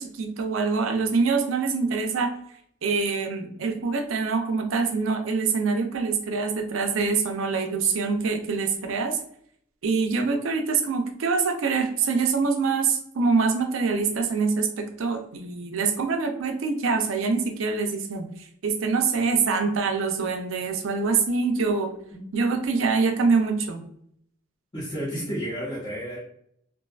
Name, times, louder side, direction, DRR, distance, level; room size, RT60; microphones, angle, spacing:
voice 1, 0.0-2.3 2.8-9.2 9.8-18.3 18.6-21.9 22.3-23.8, right 4 dB, 85° right, 5 dB, 0.4 m, -25 dB
voice 2, 24.7-26.2, equal, 20° left, -8 dB, 0.7 m, -31 dB
2.5 x 2.2 x 2.3 m, 0.67 s
head